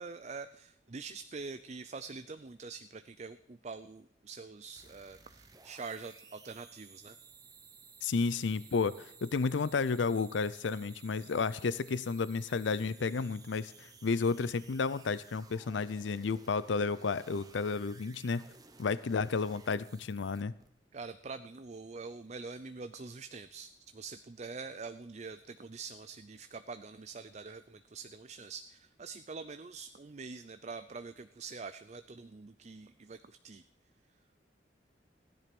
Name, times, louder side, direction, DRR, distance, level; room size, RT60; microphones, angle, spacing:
voice 1, 0.0-7.2 20.9-33.6, right 4 dB, 40° right, 11 dB, 0.5 m, -45 dB
sound 1, 4.8-20.7, right 5 dB, 20° right, 1.1 m, -57 dB
voice 2, 8.0-18.4 18.8-20.5, left 4 dB, 90° left, 17 dB, 0.5 m, -32 dB
16.0 x 10.5 x 6.0 m, 0.76 s
head